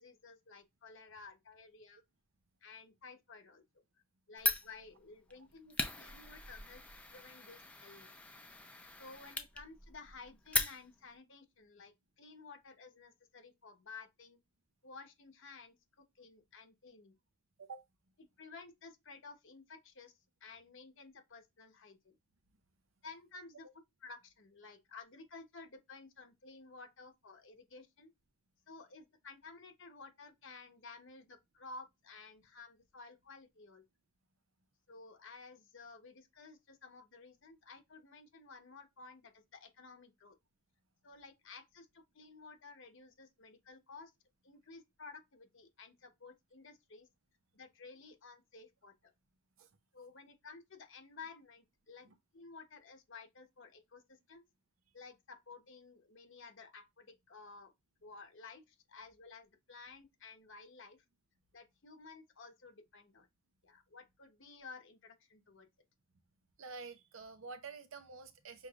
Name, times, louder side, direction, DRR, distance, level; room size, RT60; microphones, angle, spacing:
voice 1, 0.0-2.0 2.6-3.6 4.3-6.8 7.1-8.2 9.0-14.4 14.8-15.8 16.1-17.2 18.2-20.1 20.4-22.2 23.0-23.7 24.0-28.1 28.7-33.8 34.9-40.3 41.0-44.1 44.4-47.1 47.5-49.1 49.9-52.0 52.3-54.4 54.9-57.7 58.0-61.0 61.5-63.3 63.6-65.7, left 4 dB, 65° left, 1.0 m, -54 dB
Fire, 4.4-11.2, left 2 dB, 5° left, 0.6 m, -40 dB
voice 2, 66.6-68.7, right 4 dB, 70° right, 0.7 m, -48 dB
6.1 x 3.1 x 2.4 m
head